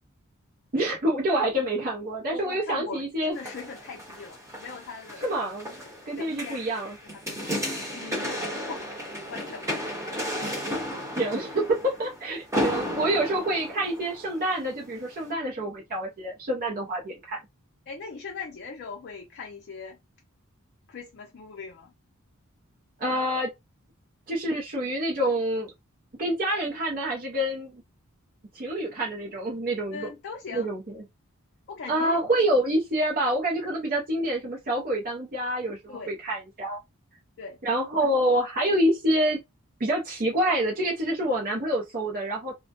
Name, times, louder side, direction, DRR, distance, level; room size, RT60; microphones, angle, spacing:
voice 1, 0.7-3.3 5.2-5.8 6.1-7.0 11.2-17.4 23.0-23.5 24.3-25.7 26.2-27.8 28.5-30.1 30.5-31.0 31.9-36.8 37.6-39.4 39.8-42.5, right 1 dB, 40° right, 0.6 m, -27 dB
voice 2, 2.3-5.3 5.8-6.7 7.0-7.5 7.9-8.4 8.7-10.7 17.9-20.0 20.9-21.9 29.9-30.7 31.7-32.2 35.9-36.2 37.4-37.6 38.0-38.4, left 5 dB, 50° left, 0.5 m, -41 dB
sound 1, 3.3-14.6 15.1-15.2, equal, 15° right, 0.9 m, -33 dB
2.2 x 2.1 x 2.7 m
head